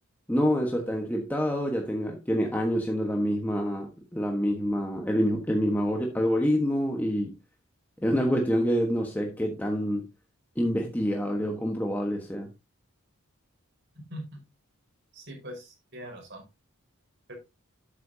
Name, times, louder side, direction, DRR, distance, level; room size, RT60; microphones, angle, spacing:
voice 1, 0.3-7.4 8.0-10.1 10.6-12.5, equal, 10° left, 1.3 m, -27 dB
voice 2, 15.1-16.4 17.3-17.4, equal, 55° right, 4.8 m, -41 dB
12.0 x 8.6 x 2.8 m
head